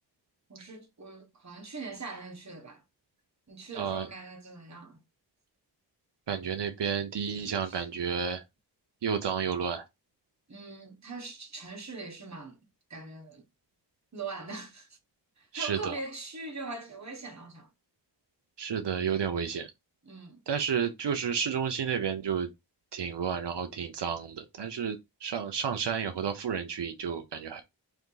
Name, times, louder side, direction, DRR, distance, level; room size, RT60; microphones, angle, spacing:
voice 1, 0.5-2.8 3.5-5.0 7.7-7.8 10.5-12.6 12.9-13.4 14.1-15.0 15.4-17.7 20.0-20.4, right 3 dB, 40° right, 1.1 m, -42 dB
voice 2, 3.7-4.1 6.3-8.4 9.0-9.9 15.5-15.9 18.6-19.7 20.5-22.5 22.9-27.6, right 7 dB, 90° right, 0.6 m, -31 dB
3.5 x 2.7 x 3.8 m
wide cardioid pair, 65°, 41 cm